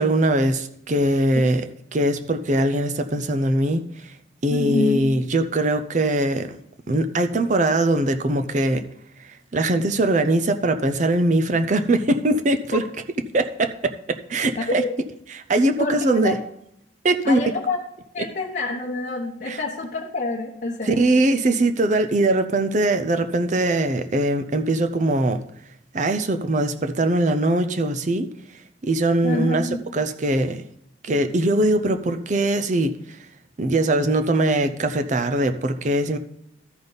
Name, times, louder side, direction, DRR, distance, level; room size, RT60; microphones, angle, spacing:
voice 1, 0.0-1.6 1.9-3.8 4.4-6.5 6.9-8.8 9.5-12.8 13.3-14.8 15.5-16.4 17.0-17.4 19.5-19.6 20.8-25.4 25.9-28.3 28.8-30.6 31.0-33.0 33.6-36.2, right 1 dB, 40° right, 8 dB, 0.5 m, -21 dB
voice 2, 4.5-5.0 14.7-14.9 15.8-16.4 17.2-17.8 18.1-21.0 29.2-29.8, left 2 dB, 45° left, -5 dB, 1.0 m, -27 dB
13.5 x 5.2 x 4.0 m, 0.74 s
head